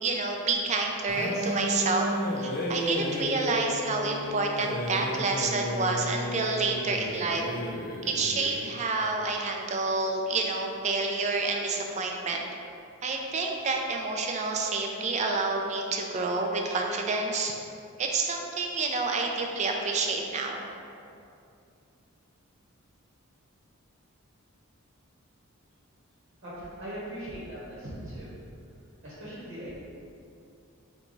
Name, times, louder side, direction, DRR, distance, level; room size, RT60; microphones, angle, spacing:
voice 1, 0.0-2.0 2.4-7.4 8.0-12.4 13.0-17.5 18.0-20.7, right 3 dB, 35° right, 1 dB, 0.4 m, -28 dB
sound 1, 1.1-8.8, left 1 dB, 45° left, 0.4 m, -33 dB
voice 2, 26.4-28.3 29.0-29.8, right 1 dB, 50° right, -8 dB, 1.0 m, -40 dB
4.6 x 2.3 x 3.9 m, 2.5 s
head